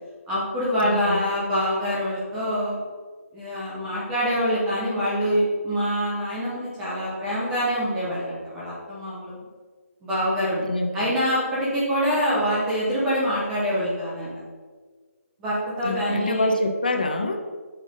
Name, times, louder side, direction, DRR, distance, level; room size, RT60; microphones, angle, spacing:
voice 1, 0.3-2.8 3.3-9.3 10.0-10.6 10.9-14.3 15.4-16.5, equal, 5° right, -8 dB, 0.5 m, -25 dB
voice 2, 0.8-1.3 10.6-11.1 15.8-17.4, left 2 dB, 35° left, 5 dB, 0.7 m, -26 dB
6.3 x 6.1 x 5.1 m, 1.5 s
hypercardioid pair, 180°, 8 cm